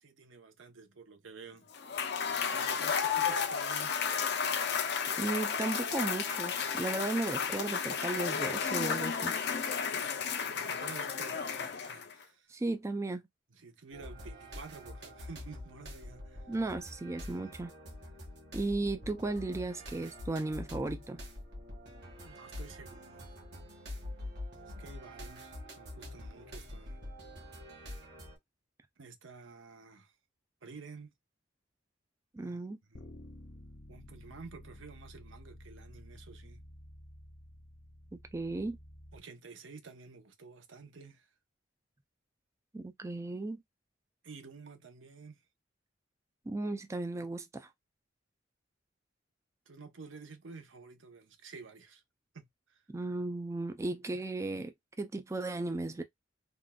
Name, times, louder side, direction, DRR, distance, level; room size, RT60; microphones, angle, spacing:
voice 1, 0.0-1.7 2.5-4.0 9.9-12.5 13.5-16.5 22.2-23.3 24.8-27.0 29.0-30.1 30.6-31.1 32.4-33.0 33.9-36.6 39.1-41.3 44.2-45.4 49.7-52.0 52.3-52.8, right 4 dB, 85° right, 0.8 m, -51 dB
Cheering / Applause / Crowd, 1.7-12.2, left 6 dB, 60° left, 0.6 m, -33 dB
voice 2, 5.2-9.3 12.5-13.2 16.5-17.7 18.5-21.2 32.3-32.8 38.3-38.8 42.7-43.6 46.5-47.7 52.9-56.0, right 2 dB, 15° right, 0.3 m, -35 dB
sound 1, 13.9-28.4, left 1 dB, 60° right, 1.7 m, -46 dB
Bass guitar, 32.9-39.2, left 1 dB, 75° left, 1.1 m, -52 dB
3.6 x 2.4 x 2.2 m
head